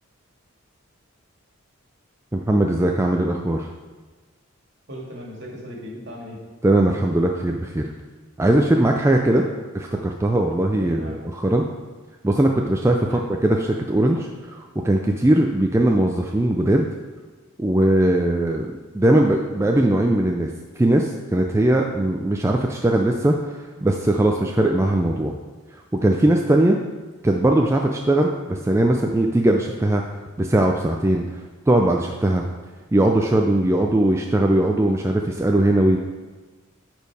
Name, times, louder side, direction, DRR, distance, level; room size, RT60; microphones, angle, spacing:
voice 1, 2.3-3.7 6.6-7.8 8.4-9.4 10.0-11.6 12.2-16.9 17.6-18.7 18.9-20.5 20.8-23.4 23.8-25.3 26.0-26.8 27.2-30.0 30.4-31.2 31.7-32.4 32.9-36.0, right 1 dB, 15° right, 1 dB, 0.4 m, -19 dB
voice 2, 4.9-6.4 9.2-9.6 10.8-11.1 13.0-13.2, equal, 55° right, -2 dB, 2.1 m, -37 dB
10.5 x 4.6 x 4.7 m, 1.3 s
head